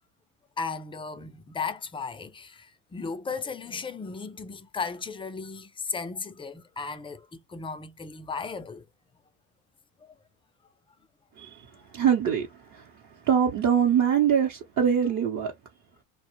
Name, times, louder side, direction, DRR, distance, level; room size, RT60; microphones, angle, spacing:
voice 1, 0.6-8.9 10.0-10.1, left 5 dB, 15° left, 0.3 m, -35 dB
voice 2, 11.4-15.5, right 8 dB, 45° right, 0.8 m, -24 dB
2.1 x 2.1 x 3.0 m
supercardioid pair, 85°, 41 cm